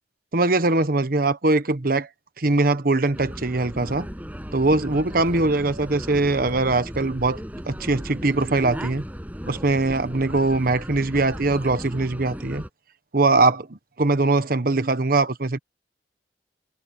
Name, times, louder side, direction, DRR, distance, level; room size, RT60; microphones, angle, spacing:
voice 1, 0.3-2.1 2.4-4.1 4.5-9.0 9.4-12.6 13.1-15.6, right 2 dB, 55° right, 1.2 m, -22 dB
sound 1, 3.1-12.7, equal, 10° right, 6.8 m, -36 dB
head